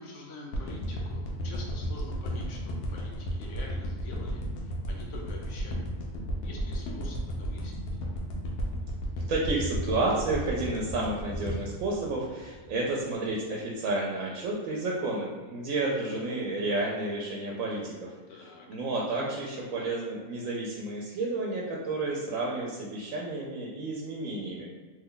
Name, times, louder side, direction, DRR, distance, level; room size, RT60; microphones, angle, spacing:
voice 1, 0.0-5.8 6.4-7.7 18.3-18.7, left 2 dB, 70° left, 0 dB, 0.9 m, -46 dB
sound 1, 0.5-12.8 13.3-13.4, equal, 90° left, 1.1 m, -33 dB
voice 2, 9.3-24.7, right 2 dB, 75° right, -3 dB, 1.0 m, -31 dB
3.0 x 2.2 x 3.7 m, 1.3 s
omnidirectional pair, 1.4 m